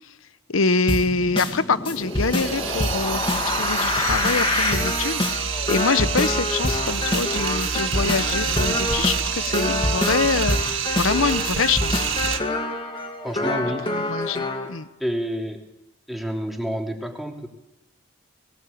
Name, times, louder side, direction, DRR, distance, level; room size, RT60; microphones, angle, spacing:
voice 1, 0.5-10.6 11.0-12.0 13.9-14.9, left 4 dB, 70° left, 14 dB, 0.9 m, -25 dB
sound 1, 0.9-14.7, left 2 dB, 25° left, 2.5 m, -26 dB
sound 2, 2.0-12.4, right 7 dB, 60° right, 1.7 m, -27 dB
voice 2, 13.2-13.9 15.0-15.6 16.1-17.5, equal, ahead, 1 dB, 2.9 m, -28 dB
20.5 x 19.0 x 8.6 m, 0.93 s
head